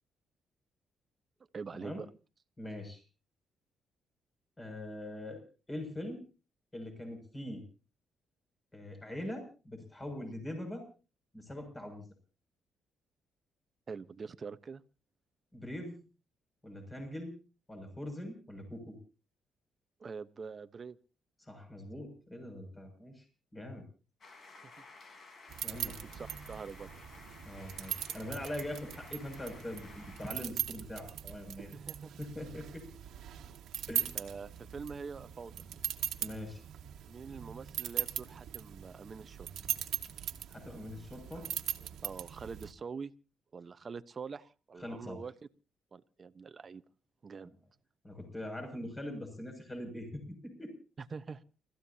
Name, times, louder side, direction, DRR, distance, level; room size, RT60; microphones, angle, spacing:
voice 1, 1.5-2.1 13.9-14.8 20.0-21.0 24.6-24.8 26.0-26.9 31.6-32.1 34.1-35.5 37.1-39.5 42.0-43.1 43.5-45.3 45.9-46.8 47.2-47.5 51.0-51.4, right 5 dB, 40° right, 12 dB, 1.0 m, -44 dB
voice 2, 2.6-3.0 4.6-6.2 6.7-7.6 8.7-10.9 11.3-12.1 15.5-16.0 16.6-17.4 17.7-19.0 21.4-23.2 23.5-23.8 25.6-26.0 27.4-31.7 32.2-32.9 33.9-34.1 36.2-36.6 40.5-41.5 44.8-45.2 48.0-50.7, left 1 dB, 15° left, 5 dB, 6.8 m, -42 dB
sound 1, 24.2-30.4, left 3 dB, 50° left, 4.0 m, -54 dB
sound 2, 25.5-42.7, right 11 dB, 75° right, 1.7 m, -40 dB
29.5 x 14.5 x 2.8 m, 0.35 s
cardioid pair, 90°, 0 cm